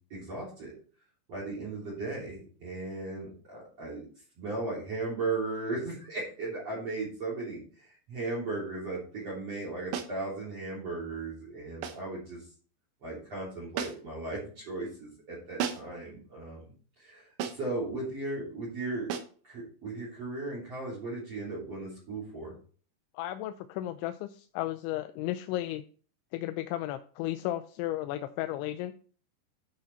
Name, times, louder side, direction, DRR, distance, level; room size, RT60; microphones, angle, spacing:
voice 1, 0.1-0.7 1.3-4.0 4.4-12.5 13.0-16.7 17.0-17.3 17.5-19.1 19.4-22.5, right 3 dB, 35° right, -5 dB, 4.0 m, -36 dB
sound 1, 9.9-10.2 11.8-12.1 13.8-14.2 15.6-16.0 17.4-17.8 19.1-19.4, right 8 dB, 75° right, 2.9 m, -35 dB
voice 2, 23.1-25.8 26.3-28.9, left 14 dB, 85° left, 9 dB, 2.9 m, -34 dB
11.0 x 6.3 x 4.2 m, 0.42 s
omnidirectional pair, 5.3 m